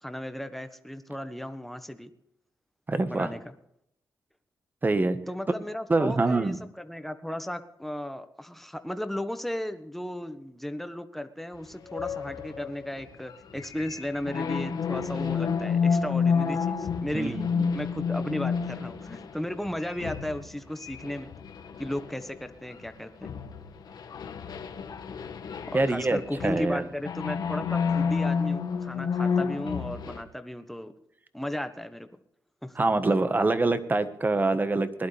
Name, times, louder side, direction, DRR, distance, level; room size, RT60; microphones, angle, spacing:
voice 1, 0.0-2.1 3.1-3.5 5.3-17.5 17.7-21.3 21.8-23.3 25.7-30.9 31.3-32.2 32.6-32.8, left 1 dB, 5° left, 9 dB, 1.3 m, -35 dB
voice 2, 2.9-3.3 4.8-5.2 5.9-6.6 17.1-17.7 25.7-26.9 32.8-35.1, right 2 dB, 25° right, 10 dB, 1.4 m, -25 dB
sound 1, 11.8-22.9 23.2-30.2, left 6 dB, 70° left, 1.5 m, -30 dB
21.0 x 11.5 x 3.4 m, 0.75 s
cardioid pair, 95°, 7 cm